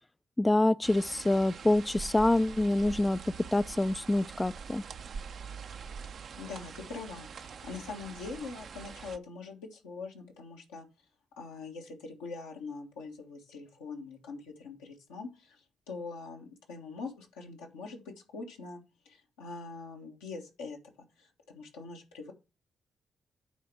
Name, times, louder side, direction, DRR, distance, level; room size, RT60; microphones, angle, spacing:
voice 1, 0.4-3.2 3.5-4.8, left 1 dB, 20° left, 0.3 m, -26 dB
sound 1, 0.8-9.2, right 6 dB, 65° right, 0.6 m, -44 dB
voice 2, 6.3-10.8 11.4-20.8 21.2-22.3, left 4 dB, 90° left, 1.6 m, -43 dB
9.3 x 3.5 x 6.1 m
hypercardioid pair, 45°, 0 cm